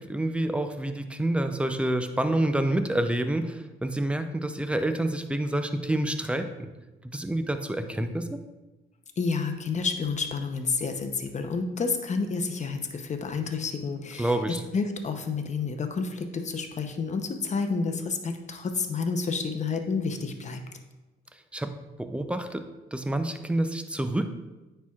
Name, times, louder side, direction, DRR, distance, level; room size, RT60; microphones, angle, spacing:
voice 1, 0.0-6.5 7.1-8.4 14.2-14.6 21.5-21.7 22.0-24.3, right 1 dB, 5° right, 8 dB, 0.5 m, -28 dB
voice 2, 9.2-14.3 14.7-20.6, left 4 dB, 35° left, 5 dB, 0.7 m, -30 dB
9.4 x 4.4 x 2.4 m, 1.1 s
cardioid pair, 90°, 20 cm